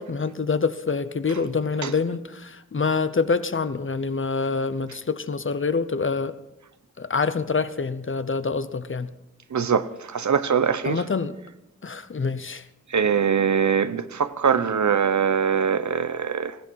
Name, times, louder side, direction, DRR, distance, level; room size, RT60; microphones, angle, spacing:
voice 1, 0.0-6.3 7.0-9.1 10.8-11.3 11.8-12.7, left 4 dB, 45° left, 0.9 m, -26 dB
voice 2, 9.5-11.0 12.9-16.6, right 7 dB, 80° right, 0.8 m, -22 dB
19.5 x 15.5 x 4.6 m
wide cardioid pair, 95°, 29 cm